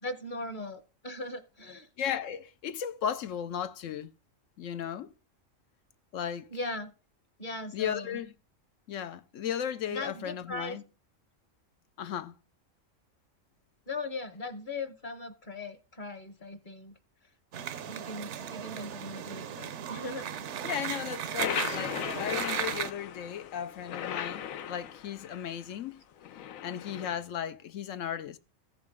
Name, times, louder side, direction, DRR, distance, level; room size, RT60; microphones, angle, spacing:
voice 1, 0.0-1.9 6.5-6.9 7.4-8.2 9.9-10.8 13.9-16.9 17.8-20.3, left 2 dB, 40° left, 1.1 m, -39 dB
voice 2, 2.0-4.1 4.6-5.1 6.1-6.5 7.7-8.3 8.9-10.8 12.0-12.4 20.6-26.0 26.6-28.4, left 9 dB, 75° left, 1.0 m, -35 dB
sound 1, 17.5-22.9, right 9 dB, 65° right, 0.9 m, -36 dB
sound 2, 21.4-25.6 26.2-27.2, left 9 dB, 90° left, 1.1 m, -37 dB
15.0 x 5.4 x 3.6 m
omnidirectional pair, 1.4 m